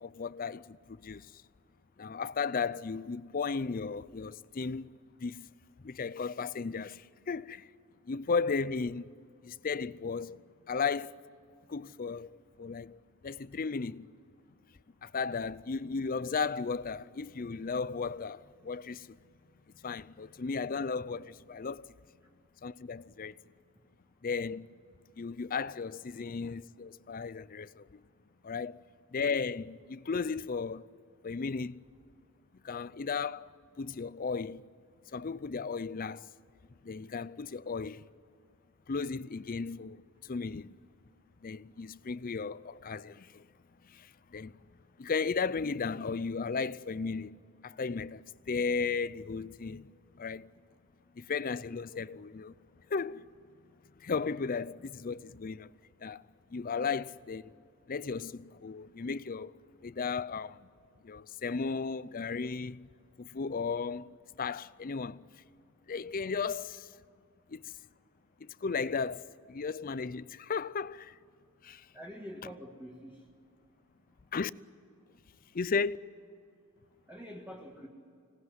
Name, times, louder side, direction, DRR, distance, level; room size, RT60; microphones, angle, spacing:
voice 1, 0.0-1.4 2.0-4.9 5.2-5.5 5.8-7.7 8.1-9.1 9.4-10.4 10.7-11.2 11.7-14.1 15.0-19.2 19.8-21.9 22.6-23.4 24.2-24.7 25.2-28.0 28.4-28.8 29.1-30.9 31.2-31.8 32.6-33.5 33.8-34.7 35.1-36.3 36.8-38.0 38.9-40.8 41.4-43.5 43.8-44.6 45.0-47.4 47.6-50.5 51.2-52.5 52.9-53.3 54.0-55.7 56.0-56.2 56.5-57.5 57.9-59.5 59.8-60.7 61.0-62.8 63.2-64.1 64.4-65.3 65.9-66.9 67.5-67.8 68.4-71.2 71.6-71.9 74.3-74.5 75.5-76.0, left 5 dB, 40° left, 0.5 m, -35 dB
voice 2, 71.9-73.2 77.1-77.9, equal, 10° right, 1.7 m, -46 dB
25.5 x 18.5 x 9.6 m
head